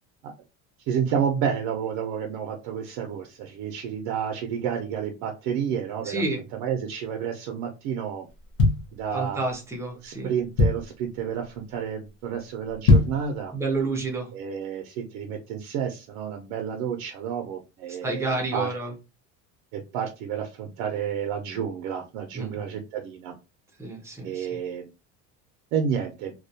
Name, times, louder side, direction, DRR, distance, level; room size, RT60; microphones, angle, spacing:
voice 1, 0.9-6.2 6.5-8.3 8.9-9.4 10.0-13.5 14.3-18.7 19.7-23.3 24.2-24.9 25.7-26.3, right 7 dB, 60° right, 3 dB, 0.5 m, -30 dB
voice 2, 6.0-6.4 9.1-10.3 13.5-14.3 17.9-18.9 22.3-22.6 23.8-24.6, right 3 dB, 10° right, 1 dB, 0.5 m, -30 dB
sound 1, 8.3-9.5 10.0-10.1 10.3-11.1 11.5-11.8 12.1-12.2 12.7-13.3 13.7-13.8, left 3 dB, 45° left, 0.7 m, -21 dB
2.3 x 2.1 x 2.7 m, 0.28 s
cardioid pair, 150°, 34 cm